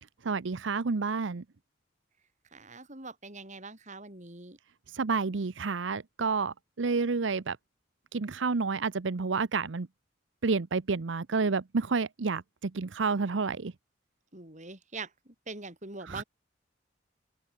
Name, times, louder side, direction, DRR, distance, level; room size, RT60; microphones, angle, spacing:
voice 1, 0.2-1.4 4.9-7.6 8.1-9.9 10.4-13.7 16.0-16.2, right 4 dB, 85° right, 0.7 m, -30 dB
voice 2, 2.5-4.6 14.3-16.2, right 3 dB, 40° right, 6.2 m, -43 dB
open air
head